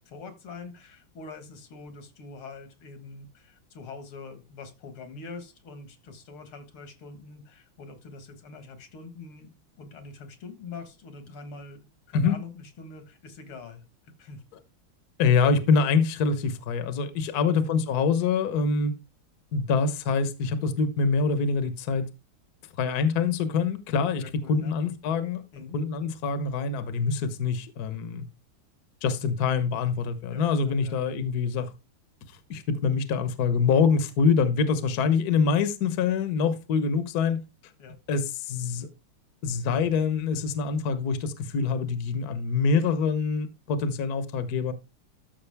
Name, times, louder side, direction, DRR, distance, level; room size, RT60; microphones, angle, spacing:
voice 1, 0.1-9.5 9.8-14.4 17.4-17.6 24.2-24.7 25.5-25.8 30.3-30.4 30.8-31.1 37.8-38.0, left 4 dB, 80° left, 2.4 m, -44 dB
voice 2, 15.2-18.9 19.5-22.1 22.8-25.4 25.7-28.3 29.0-31.7 32.5-37.4 38.1-38.9 39.4-44.7, left 5 dB, 55° left, 1.3 m, -25 dB
13.0 x 6.2 x 3.4 m
omnidirectional pair, 2.4 m